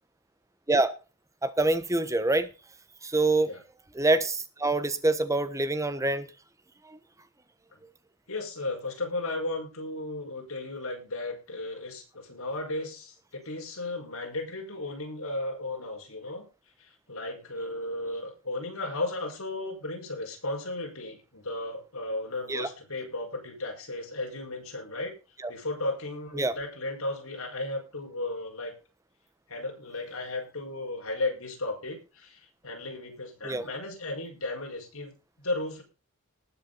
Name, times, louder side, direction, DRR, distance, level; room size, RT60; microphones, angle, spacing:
voice 1, 1.4-2.5 3.0-3.5 3.9-6.3 6.9-7.0 22.5-22.7 25.4-25.5 26.3-26.5 33.4-33.6, right 2 dB, 15° right, 12 dB, 1.1 m, -25 dB
voice 2, 8.3-16.5 16.8-25.1 25.5-28.7 29.5-35.8, left 2 dB, 80° left, 1 dB, 5.4 m, -35 dB
19.0 x 7.5 x 4.2 m, 0.32 s
head